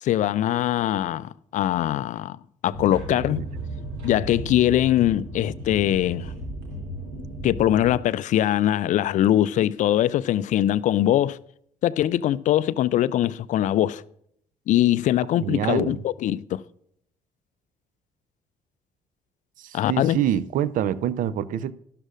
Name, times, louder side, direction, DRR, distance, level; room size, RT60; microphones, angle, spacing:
voice 1, 0.0-2.4 2.6-3.4 4.0-6.3 7.4-11.4 11.8-14.0 14.7-16.6 19.7-20.2, left 12 dB, 50° left, 0.4 m, -22 dB
sound 1, 2.7-8.0, right 1 dB, 70° right, 2.8 m, -35 dB
voice 2, 15.4-16.0 19.6-21.7, right 10 dB, 55° right, 0.5 m, -26 dB
12.5 x 11.5 x 2.5 m
figure-of-eight pair, 45°, 17 cm